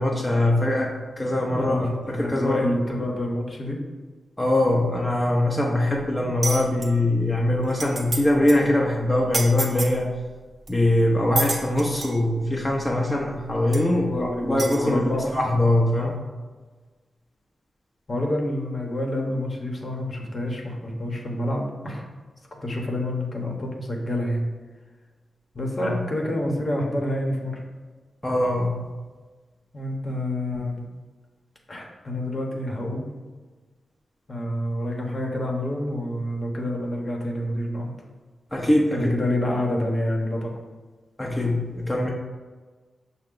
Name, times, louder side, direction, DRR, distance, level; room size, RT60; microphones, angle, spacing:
voice 1, 0.0-2.7 4.4-10.1 10.7-16.2 25.8-26.0 28.2-28.8 38.5-39.1 41.2-42.1, left 1 dB, 20° left, -2 dB, 0.6 m, -22 dB
voice 2, 1.5-3.8 13.9-15.4 18.1-22.1 22.5-24.5 25.5-27.6 29.7-30.8 31.7-33.1 34.3-37.9 38.9-40.5, left 1 dB, 45° left, 0 dB, 0.9 m, -28 dB
sound 1, 6.4-6.9 7.4-7.5 7.7-8.2 8.5-8.6 9.3-9.9 10.7-10.8 11.4-12.2 13.1-13.2 13.7-13.8 14.6-14.8, right 2 dB, 50° right, 0.6 m, -28 dB
5.4 x 2.1 x 3.8 m, 1.4 s
supercardioid pair, 40°, 0 cm